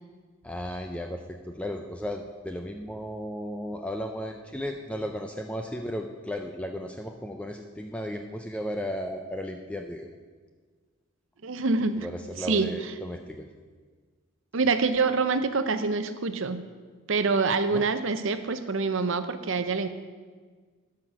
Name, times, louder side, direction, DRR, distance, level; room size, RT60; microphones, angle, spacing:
voice 1, 0.4-10.1 12.0-13.5 17.7-17.8, equal, 5° left, 4 dB, 0.4 m, -35 dB
voice 2, 11.4-12.1 12.4-12.7 14.5-16.6 17.1-19.9, right 4 dB, 60° right, 10 dB, 0.6 m, -26 dB
12.5 x 5.9 x 6.0 m, 1.5 s
head